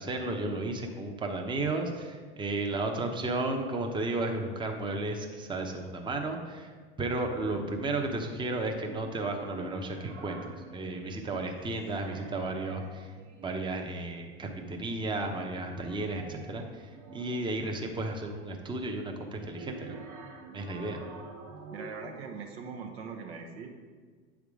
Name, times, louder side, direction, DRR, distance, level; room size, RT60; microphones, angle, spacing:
voice 1, 0.0-6.7 7.0-13.1 13.4-20.0 20.5-21.0, right 2 dB, 15° right, 3 dB, 0.8 m, -33 dB
sound 1, 8.5-11.4 11.7-14.0 15.2-17.7 19.1-22.4, right 3 dB, 60° right, 1.3 m, -48 dB
voice 2, 21.7-23.7, right 5 dB, 80° right, 3 dB, 1.1 m, -41 dB
8.2 x 3.6 x 4.8 m, 1.5 s
hypercardioid pair, 90°, 30 cm